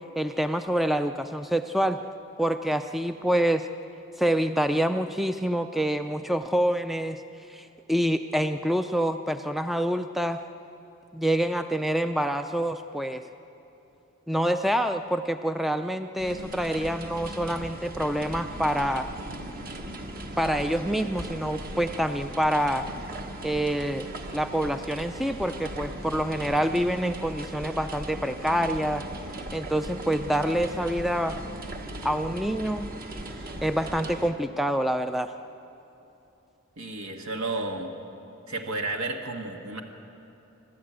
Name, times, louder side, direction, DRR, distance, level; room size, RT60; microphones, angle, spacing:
voice 1, 0.2-2.0 2.4-3.7 4.2-7.2 7.5-10.4 11.1-13.2 14.3-19.1 20.4-22.9 23.4-29.1 29.5-31.4 32.0-32.9 33.6-35.3, equal, ahead, 8 dB, 0.4 m, -26 dB
sound 1, 16.2-34.3, right 1 dB, 45° right, 1.3 m, -38 dB
voice 2, 36.8-37.9 38.5-39.8, right 2 dB, 80° right, 3 dB, 1.6 m, -32 dB
26.5 x 12.5 x 8.9 m, 2.9 s
head